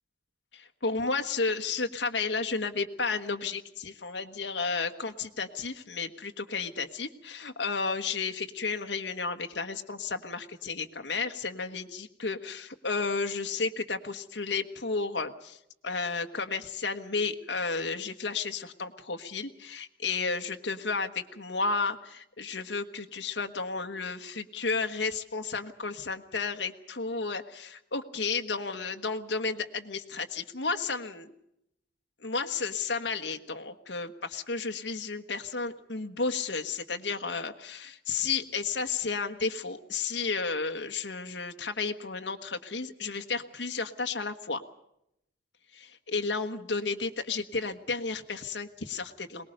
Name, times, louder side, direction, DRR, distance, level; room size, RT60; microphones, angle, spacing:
voice 1, 0.5-15.6 15.8-31.3 32.2-44.6 45.7-49.5, left 4 dB, 85° left, 6 dB, 1.4 m, -32 dB
23.0 x 20.0 x 6.6 m, 0.78 s
head